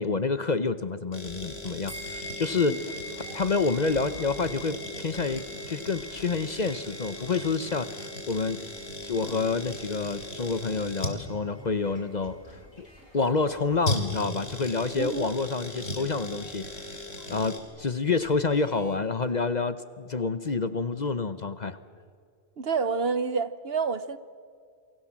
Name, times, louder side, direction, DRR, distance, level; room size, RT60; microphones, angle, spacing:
voice 1, 0.0-8.6 9.0-12.9 13.1-17.0 17.3-21.8, left 4 dB, 40° left, 0.9 m, -28 dB
sound 1, 1.1-17.6, left 1 dB, 60° left, 3.5 m, -38 dB
sound 2, 1.9-11.6, equal, 10° right, 5.1 m, -46 dB
sound 3, 2.9-11.2 11.4-19.0, equal, 90° left, 7.2 m, -54 dB
voice 2, 14.9-15.3 22.6-24.2, right 5 dB, 55° right, 1.1 m, -28 dB
28.5 x 23.0 x 7.4 m
omnidirectional pair, 1.2 m